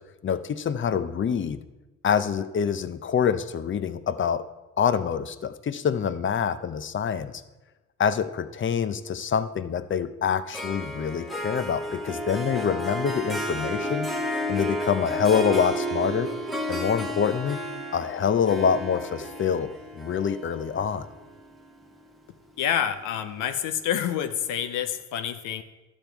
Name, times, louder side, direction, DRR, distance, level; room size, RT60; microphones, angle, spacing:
voice 1, 0.2-1.6 2.0-4.5 4.8-7.4 8.0-14.2 14.5-16.3 16.7-17.7 17.9-21.1, left 7 dB, 40° left, 13 dB, 0.7 m, -26 dB
Harp, 10.5-22.0, equal, ahead, 1.0 m, -32 dB
voice 2, 22.6-25.6, left 9 dB, 90° left, 9 dB, 0.7 m, -28 dB
11.5 x 7.2 x 4.6 m, 1.1 s
cardioid pair, 90°, 30 cm